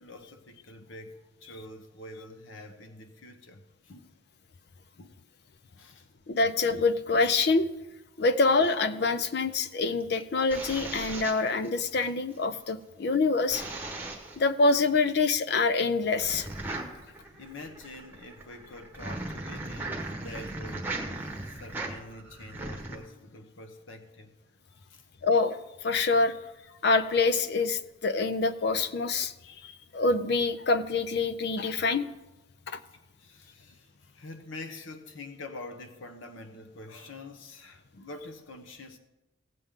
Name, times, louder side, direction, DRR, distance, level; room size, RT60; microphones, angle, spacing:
voice 1, 0.0-4.1 5.0-5.2 5.8-6.1 17.0-17.1 17.4-21.0 21.4-24.3 24.7-25.0 26.7-26.8 33.2-39.0, left 2 dB, 85° left, 6 dB, 0.9 m, -46 dB
voice 2, 6.3-7.7 8.2-13.6 14.4-16.5 25.2-25.6 25.8-26.3 26.8-29.3 29.6-32.1 32.7-32.8, left 3 dB, 55° left, 12 dB, 0.5 m, -26 dB
sound 1, 10.0-12.1 13.5-14.4 16.2-23.0, right 2 dB, 10° right, 1.1 m, -38 dB
17.0 x 7.7 x 3.6 m, 1.0 s
head